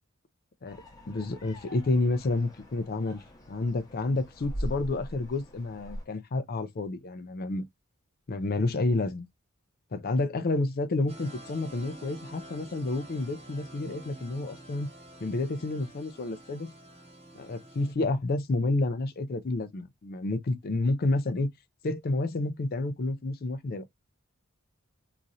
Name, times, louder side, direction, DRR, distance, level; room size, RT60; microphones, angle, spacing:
sound 1, 0.7-6.0, equal, 20° left, 0.9 m, -41 dB
voice 1, 1.1-3.2 3.5-7.7 8.3-9.3 9.9-14.9 15.2-16.7 17.3-21.5 21.8-23.9, left 2 dB, 45° left, 0.5 m, -30 dB
sound 2, 11.1-17.9, right 1 dB, 30° right, 1.1 m, -48 dB
3.0 x 2.6 x 2.5 m
head